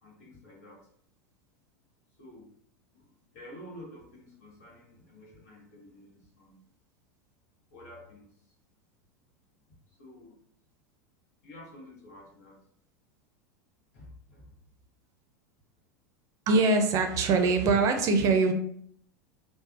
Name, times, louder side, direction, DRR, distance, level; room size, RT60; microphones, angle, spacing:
voice 1, 0.0-0.9 2.2-2.5 2.9-6.6 7.7-8.5 9.9-10.4 11.4-12.7 13.9-14.6, left 1 dB, 70° left, 1.0 m, -50 dB
voice 2, 16.5-18.5, right 3 dB, 40° right, 0.4 m, -23 dB
3.2 x 2.0 x 2.4 m
hypercardioid pair, 85°, 9 cm